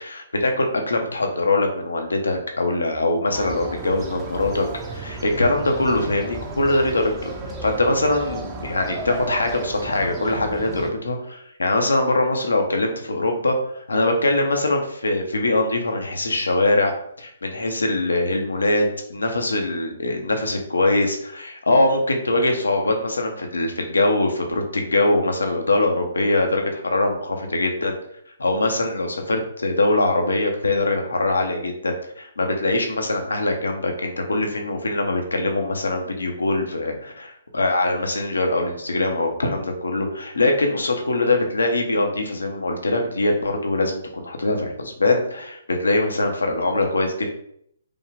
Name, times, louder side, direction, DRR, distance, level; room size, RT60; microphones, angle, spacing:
voice 1, 0.0-4.7 4.9-7.3 7.6-16.9 17.2-28.0 28.4-47.3, left 2 dB, 90° left, 3 dB, 1.0 m, -22 dB
sound 1, 3.3-10.9, right 3 dB, 20° right, 0.8 m, -33 dB
5.3 x 2.3 x 3.5 m, 0.70 s
hypercardioid pair, 140°, 0 cm